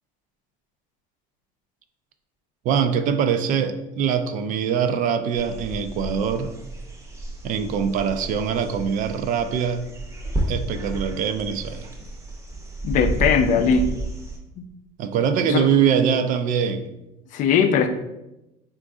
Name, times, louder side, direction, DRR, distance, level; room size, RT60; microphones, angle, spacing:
voice 1, 2.6-6.5 7.4-9.8 10.5-11.9 15.0-16.9, right 7 dB, 55° right, 9 dB, 0.4 m, -23 dB
sound 1, 5.3-14.4, right 1 dB, 15° right, 0.7 m, -32 dB
voice 2, 12.8-13.9 14.6-14.7 15.5-15.7 17.3-17.9, left 6 dB, 50° left, 8 dB, 0.4 m, -19 dB
3.8 x 2.5 x 3.5 m, 0.92 s
cardioid pair, 120°, 16 cm